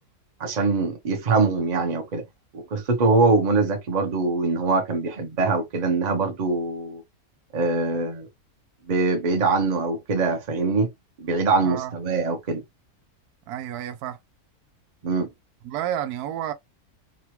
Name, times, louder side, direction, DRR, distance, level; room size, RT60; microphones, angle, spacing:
voice 1, 0.4-2.2 2.5-7.0 7.5-8.3 8.9-10.9 11.2-12.6 15.0-15.3, right 3 dB, 40° right, 0.7 m, -23 dB
voice 2, 13.5-14.2 15.6-16.5, right 11 dB, 85° right, 1.1 m, -30 dB
2.9 x 2.3 x 2.9 m
omnidirectional pair, 1.6 m